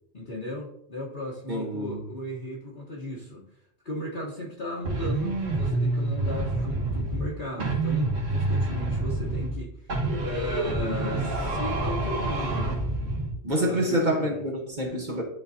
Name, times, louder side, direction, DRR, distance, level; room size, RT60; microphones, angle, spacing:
voice 1, 0.1-3.4 3.8-12.8 13.6-14.4, left 1 dB, 40° left, -6 dB, 1.3 m, -36 dB
voice 2, 1.5-2.0 13.4-15.2, right 1 dB, 40° right, -1 dB, 1.2 m, -27 dB
sound 1, 4.8-7.3 7.6-9.6 9.9-13.3, right 2 dB, 75° right, 1.7 m, -27 dB
11.0 x 3.9 x 2.7 m, 0.73 s
omnidirectional pair, 1.3 m